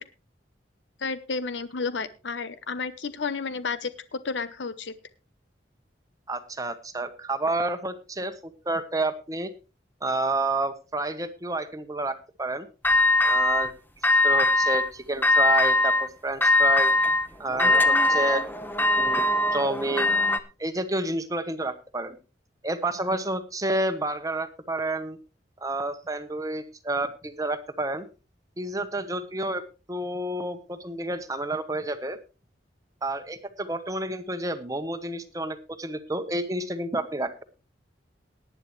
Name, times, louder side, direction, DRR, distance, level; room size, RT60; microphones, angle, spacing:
voice 1, 1.0-4.9, left 4 dB, 85° left, 13 dB, 0.8 m, -31 dB
voice 2, 6.3-8.3 8.6-9.5 10.0-12.7 13.2-13.7 14.2-16.9 17.4-18.4 19.0-20.1 20.6-22.2 22.6-25.2 25.6-28.1 28.6-29.6 29.9-32.2 33.0-37.4, right 2 dB, 20° right, 10 dB, 1.0 m, -30 dB
sound 1, 12.8-13.7 14.0-14.9 15.2-16.1 16.4-20.4, left 2 dB, 10° left, 0.9 m, -21 dB
18.5 x 10.0 x 3.2 m, 0.31 s
head